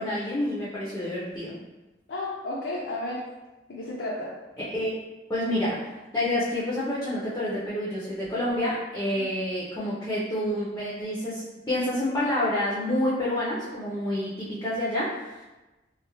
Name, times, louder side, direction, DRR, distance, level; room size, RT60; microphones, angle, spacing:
voice 1, 0.0-1.6 4.6-4.9 5.3-15.4, left 1 dB, 15° left, -8 dB, 0.4 m, -28 dB
voice 2, 2.1-3.3 3.7-4.3, left 1 dB, 80° left, -4 dB, 0.4 m, -32 dB
2.2 x 2.0 x 2.9 m, 1.1 s
head